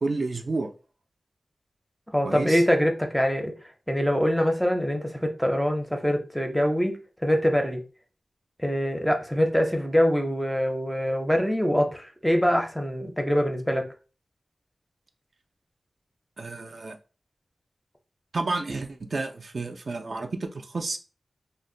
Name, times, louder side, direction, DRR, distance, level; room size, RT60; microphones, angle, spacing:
voice 1, 0.0-0.7 2.2-2.6 16.4-17.0 18.3-21.0, right 3 dB, 55° right, 0.3 m, -30 dB
voice 2, 2.1-3.5 3.9-7.8 8.6-13.8, equal, ahead, 0.5 m, -24 dB
2.4 x 2.1 x 3.7 m
wide cardioid pair, 115°, 0 cm